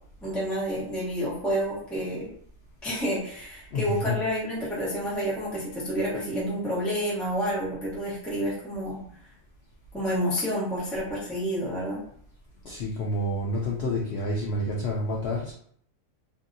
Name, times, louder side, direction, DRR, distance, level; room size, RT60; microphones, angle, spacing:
voice 1, 0.2-2.3 2.8-9.0 9.9-12.0, equal, ahead, -8 dB, 0.7 m, -29 dB
voice 2, 3.7-4.2 12.6-15.5, left 1 dB, 65° left, -3 dB, 0.7 m, -29 dB
2.7 x 2.6 x 2.6 m, 0.63 s
omnidirectional pair, 1.4 m